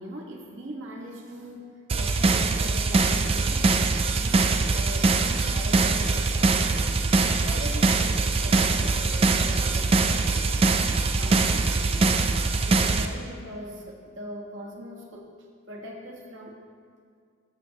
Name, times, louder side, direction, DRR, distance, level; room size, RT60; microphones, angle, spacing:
voice 1, 0.0-1.7 1.9-7.1 7.4-10.7 11.2-12.3 12.6-15.3 15.7-16.6, equal, 60° right, -1 dB, 1.2 m, -40 dB
sound 1, 1.9-13.1, right 3 dB, 25° right, 0.3 m, -23 dB
sound 2, 6.0-11.0, left 1 dB, 45° left, 1.0 m, -46 dB
13.5 x 6.7 x 2.8 m, 2.1 s
head